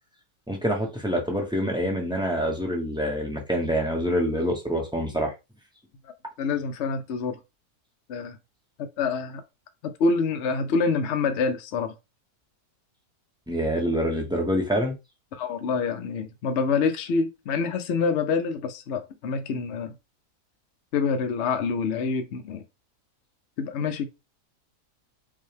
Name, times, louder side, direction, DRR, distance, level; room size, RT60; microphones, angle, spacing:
voice 1, 0.5-5.3 13.5-14.9, equal, 5° right, 0.7 m, -26 dB
voice 2, 6.4-7.4 8.1-8.4 9.0-9.4 10.0-11.9 15.3-19.9 20.9-22.6 23.6-24.1, left 4 dB, 55° left, 0.8 m, -26 dB
5.4 x 2.2 x 3.3 m
omnidirectional pair, 1.7 m